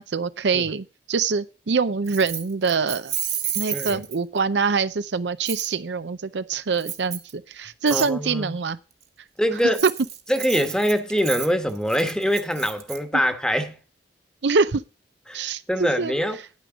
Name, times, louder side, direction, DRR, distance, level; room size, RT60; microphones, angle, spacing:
voice 1, 0.0-3.1 3.6-8.8 9.8-9.9 14.4-14.8 15.3-16.1, right 5 dB, 70° right, 0.6 m, -24 dB
Keys jangling, 2.1-4.4 5.5-5.7 6.8-7.3 7.9-8.1 9.6-13.0, right 10 dB, 40° right, 1.4 m, -31 dB
voice 2, 3.7-4.0 7.9-8.6 9.4-9.8 10.3-13.7 15.3-16.4, equal, 5° left, 1.3 m, -24 dB
9.7 x 9.4 x 4.9 m
head